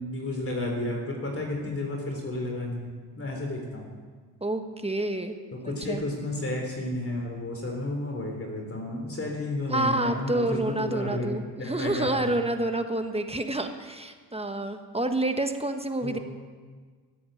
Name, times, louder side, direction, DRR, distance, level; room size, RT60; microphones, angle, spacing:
voice 1, 0.0-3.9 5.5-12.3 16.0-16.2, left 1 dB, 30° left, 1 dB, 3.7 m, -32 dB
voice 2, 4.4-5.4 5.6-6.0 9.7-16.2, right 2 dB, 15° right, 7 dB, 1.3 m, -28 dB
17.0 x 8.6 x 7.4 m, 1.5 s
cardioid pair, 70°, 41 cm